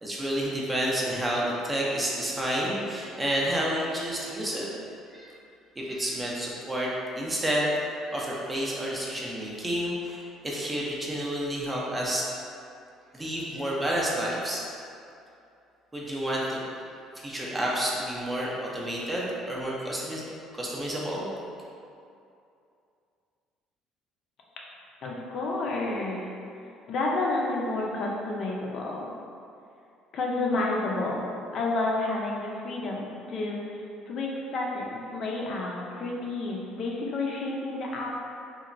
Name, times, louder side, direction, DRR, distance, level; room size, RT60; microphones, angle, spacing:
voice 1, 0.0-4.7 5.1-5.3 5.8-6.9 7.2-7.7 8.1-12.3 13.1-14.6 15.9-16.6 17.2-20.3 20.5-21.3, right 1 dB, 15° right, -4 dB, 0.4 m, -30 dB
voice 2, 25.0-26.3 26.9-29.1 30.1-38.3, left 2 dB, 50° left, -2 dB, 0.4 m, -30 dB
2.9 x 2.1 x 2.5 m, 2.5 s
cardioid pair, 130°, 0 cm